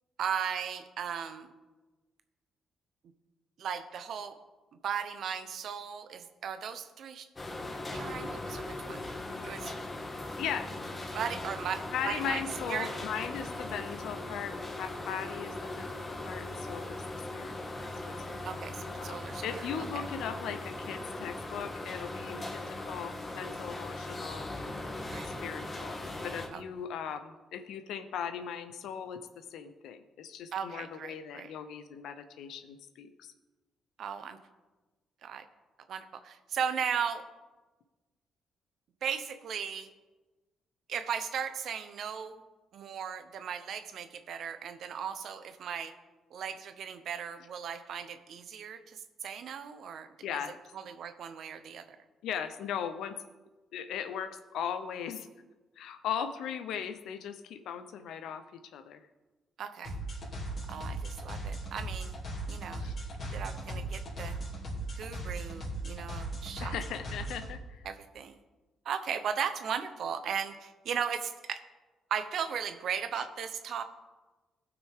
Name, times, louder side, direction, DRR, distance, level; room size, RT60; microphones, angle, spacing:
voice 1, 0.2-1.5 3.6-4.3 4.8-7.3 7.9-9.0 9.4-9.7 11.1-12.4 12.7-12.9 18.4-19.4 22.3-22.5 25.1-25.3 26.5-26.6 30.5-31.5 34.0-34.4 35.2-35.4 35.9-37.2 39.0-39.9 40.9-42.4 42.7-45.9 46.3-50.1 50.7-51.8 59.6-59.9 60.7-62.2 62.5-62.9 63.3-64.3 65.0-66.7 67.8-68.4 68.8-71.6 72.1-73.8, right 7 dB, 65° right, 10 dB, 0.8 m, -36 dB
sound 1, 7.4-26.5, left 2 dB, 30° left, 1.7 m, -39 dB
voice 2, 10.4-10.7 11.9-18.2 19.0-24.5 25.2-33.3 50.2-50.6 52.2-53.2 53.7-55.3 55.8-58.4 58.7-59.0 62.8-63.0 66.6-67.8 73.1-73.2, left 8 dB, 80° left, 10 dB, 0.7 m, -38 dB
sound 2, 59.8-67.5, right 1 dB, 50° left, 2.7 m, -38 dB
17.5 x 6.0 x 3.6 m, 1.2 s
cardioid pair, 90°, 0 cm